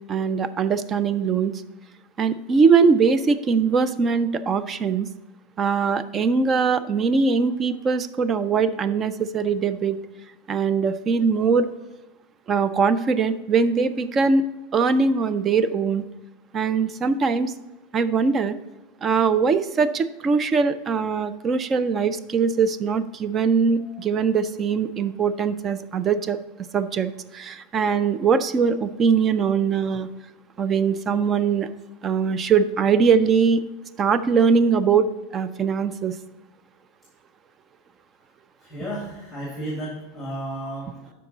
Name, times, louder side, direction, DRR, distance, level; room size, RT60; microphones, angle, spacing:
voice 1, 0.1-1.5 2.2-5.1 5.6-10.0 10.5-11.7 12.5-14.4 14.7-16.0 16.5-17.5 17.9-18.6 19.0-26.4 26.7-30.1 30.6-31.7 32.0-33.6 34.0-35.1 35.3-36.1, right 5 dB, 20° right, 13 dB, 0.4 m, -21 dB
voice 2, 38.6-41.1, right 1 dB, 5° left, -3 dB, 1.9 m, -33 dB
12.0 x 4.7 x 3.9 m, 1.1 s
supercardioid pair, 160°, 0 cm